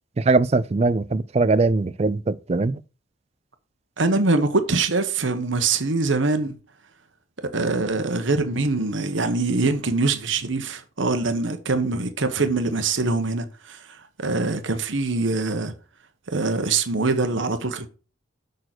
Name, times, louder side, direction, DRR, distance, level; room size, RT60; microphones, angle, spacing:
voice 1, 0.2-2.8, right 3 dB, 30° right, 0.4 m, -21 dB
voice 2, 4.0-6.5 7.5-15.7 16.3-17.9, right 3 dB, 75° right, 1.1 m, -23 dB
6.7 x 6.4 x 6.0 m
head